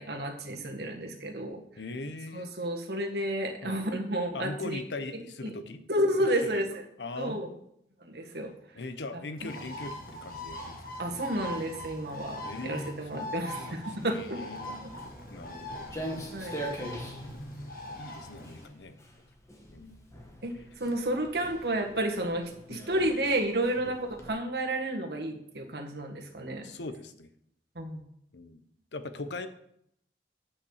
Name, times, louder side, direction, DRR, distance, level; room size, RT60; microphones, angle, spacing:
voice 1, 0.0-1.6 2.3-4.8 5.1-5.5 5.9-6.7 7.2-7.5 8.0-8.5 9.1-9.5 11.0-14.4 16.3-16.6 20.4-26.7 27.7-28.0, right 1 dB, 65° right, 2 dB, 1.7 m, -31 dB
voice 2, 1.8-2.5 3.6-3.9 4.3-5.8 6.4-6.6 7.0-7.6 8.7-10.8 12.4-13.2 13.6-15.0 15.3-16.1 16.7-17.7 18.0-19.0 19.7-20.0 22.7-22.8 23.8-24.0 26.6-27.3 28.3-28.6 28.9-29.5, left 2 dB, 80° left, 10 dB, 0.9 m, -41 dB
Bird, 9.4-18.7, left 1 dB, 55° left, 1.4 m, -42 dB
Walk footsteps, 14.8-24.3, right 1 dB, 15° left, 1.5 m, -43 dB
9.6 x 5.8 x 6.6 m, 0.74 s
head